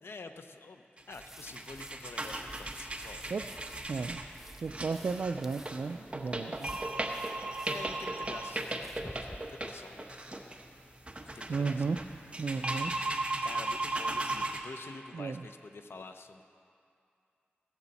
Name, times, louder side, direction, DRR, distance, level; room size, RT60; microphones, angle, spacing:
voice 1, 0.0-3.3 7.6-10.1 11.2-12.1 13.4-16.4, left 3 dB, 90° left, 7 dB, 0.7 m, -47 dB
sound 1, 1.0-14.6, right 2 dB, 30° right, 1.0 m, -37 dB
sound 2, 1.1-9.4, right 1 dB, 10° right, 0.5 m, -51 dB
voice 2, 3.9-4.2 4.6-6.7 11.5-12.0 12.4-12.9 15.1-15.4, right 4 dB, 75° right, 6 dB, 0.3 m, -34 dB
16.0 x 14.0 x 4.1 m, 2.5 s
wide cardioid pair, 80°, 4 cm